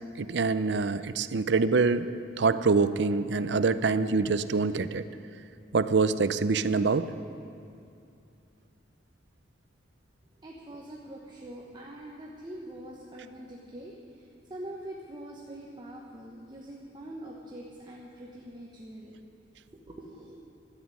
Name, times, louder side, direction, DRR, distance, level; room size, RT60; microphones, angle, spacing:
voice 1, 0.2-2.1 2.4-5.0 5.7-7.1, right 4 dB, 65° right, 13 dB, 0.5 m, -25 dB
voice 2, 10.4-19.2 19.7-20.4, right 1 dB, 25° right, -2 dB, 1.1 m, -44 dB
13.0 x 8.1 x 9.7 m, 2.5 s
head